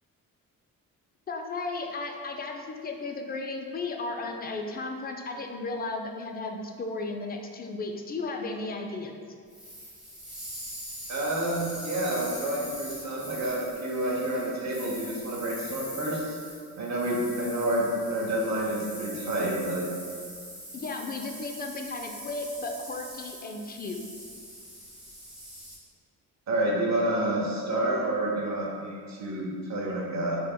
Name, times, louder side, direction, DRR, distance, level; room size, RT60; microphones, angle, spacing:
voice 1, 1.3-9.1 20.7-24.0, left 3 dB, 30° left, 3 dB, 0.3 m, -35 dB
sound 1, 9.5-25.8, equal, ahead, 1.2 m, -42 dB
voice 2, 11.1-16.4 16.8-19.8 26.5-30.4, right 1 dB, 55° right, -3 dB, 0.8 m, -29 dB
4.3 x 3.3 x 2.2 m, 2.1 s
cardioid pair, 85°, 34 cm